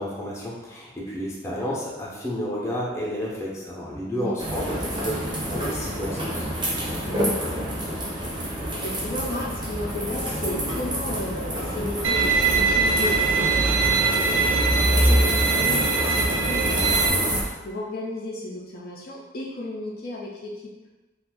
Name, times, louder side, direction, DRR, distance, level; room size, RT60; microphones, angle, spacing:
voice 1, 0.0-5.2 5.5-6.5, equal, 15° left, -5 dB, 0.6 m, -31 dB
sound 1, 4.4-17.4, equal, 25° right, 0.6 m, -26 dB
voice 2, 4.7-5.2 7.1-8.2 8.6-20.7, left 1 dB, 55° left, -2 dB, 0.4 m, -34 dB
Bowed string instrument, 12.0-17.1, right 5 dB, 80° right, 0.4 m, -23 dB
2.5 x 2.3 x 3.5 m, 1.1 s
head